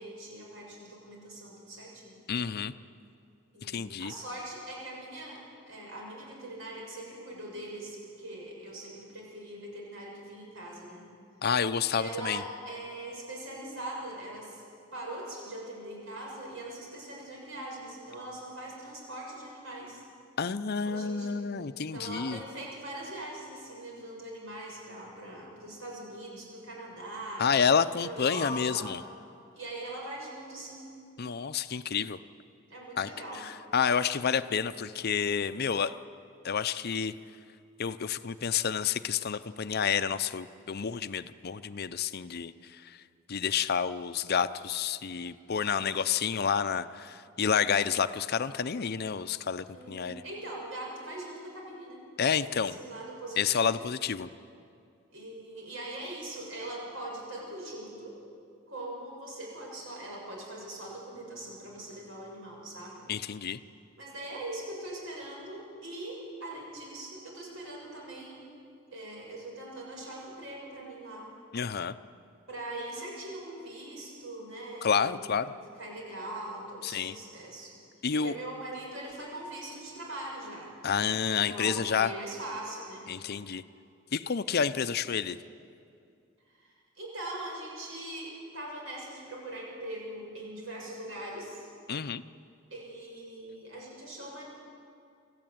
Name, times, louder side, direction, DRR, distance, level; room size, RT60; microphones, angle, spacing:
voice 1, 0.0-2.2 3.5-11.1 11.9-14.6 14.9-20.0 20.8-21.5 21.9-27.5 28.0-29.0 29.5-30.9 32.7-33.5 49.7-52.0 52.4-53.8 55.1-58.2 58.7-63.1 64.0-68.5 68.9-71.3 72.5-77.8 78.1-80.7 81.5-83.1 86.6-91.7 92.7-94.4, right 1 dB, 70° right, -2 dB, 6.9 m, -41 dB
voice 2, 2.3-2.7 3.6-4.1 11.4-12.4 20.4-22.4 27.4-29.0 31.2-32.2 33.0-33.1 33.3-36.0 36.4-37.1 37.8-43.0 43.3-50.2 52.2-52.8 53.4-54.3 63.1-63.6 71.5-71.9 74.8-75.5 76.8-77.2 78.0-78.3 80.8-82.1 83.1-83.6 84.1-85.4 91.9-92.2, left 6 dB, 50° left, 13 dB, 0.6 m, -29 dB
24.5 x 14.5 x 9.3 m, 2.4 s
head